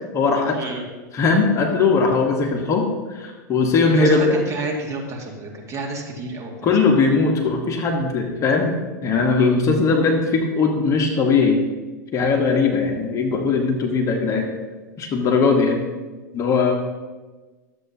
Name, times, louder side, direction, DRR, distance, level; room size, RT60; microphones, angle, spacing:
voice 1, 0.1-0.6 1.1-4.2 6.6-8.7 9.0-11.6 12.1-14.5 15.0-15.8 16.3-16.7, left 4 dB, 30° left, 2 dB, 1.2 m, -19 dB
voice 2, 3.9-6.5, right 2 dB, 30° right, -1 dB, 2.1 m, -29 dB
12.0 x 7.9 x 2.8 m, 1.3 s
hypercardioid pair, 110°, 10 cm